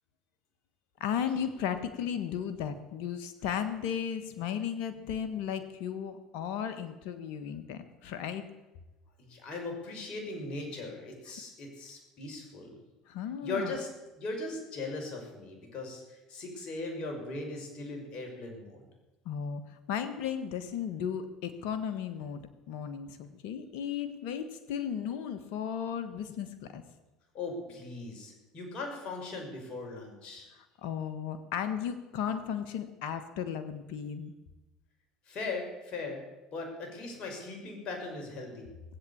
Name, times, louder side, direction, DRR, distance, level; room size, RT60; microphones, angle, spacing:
voice 1, 1.0-8.4 13.1-13.8 19.2-26.8 30.8-34.3, left 8 dB, 75° left, 9 dB, 1.4 m, -35 dB
voice 2, 9.2-12.8 13.4-13.9 14.2-18.8 27.3-30.5 35.3-36.2 36.5-38.7, left 3 dB, 50° left, 2 dB, 5.9 m, -39 dB
19.0 x 8.4 x 8.6 m, 1.1 s
supercardioid pair, 80°, 2 cm